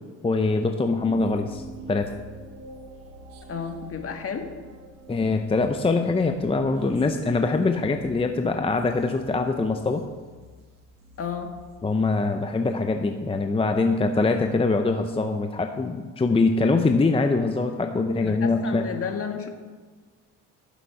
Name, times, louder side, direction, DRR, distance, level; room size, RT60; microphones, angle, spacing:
voice 1, 0.2-2.1 5.1-10.0 11.8-18.8, left 3 dB, 15° left, 5 dB, 0.7 m, -23 dB
sound 1, 1.0-12.6, right 1 dB, 85° right, 1.5 m, -46 dB
voice 2, 3.5-4.5 11.2-11.5 16.7-16.9 18.2-19.5, left 6 dB, 45° left, 5 dB, 1.7 m, -32 dB
14.5 x 7.1 x 5.7 m, 1.4 s
cardioid pair, 100°, 32 cm